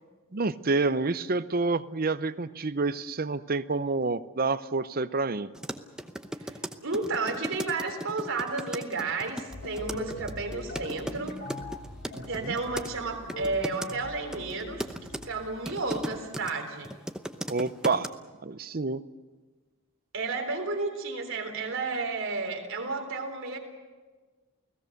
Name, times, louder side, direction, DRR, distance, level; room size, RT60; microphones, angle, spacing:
voice 1, 0.3-5.5 12.1-12.6 17.5-18.1 18.4-19.0, right 3 dB, 40° right, 13 dB, 0.7 m, -28 dB
sound 1, 5.5-12.9 13.3-13.9 14.3-16.5 16.8-18.1, equal, 5° right, 0.8 m, -36 dB
voice 2, 6.4-11.4 12.2-14.9 15.2-16.9 20.1-23.6, right 3 dB, 60° right, 3 dB, 3.6 m, -32 dB
sound 2, 9.5-16.2, left 1 dB, 50° left, 2.9 m, -42 dB
29.5 x 18.0 x 6.6 m, 1.3 s
head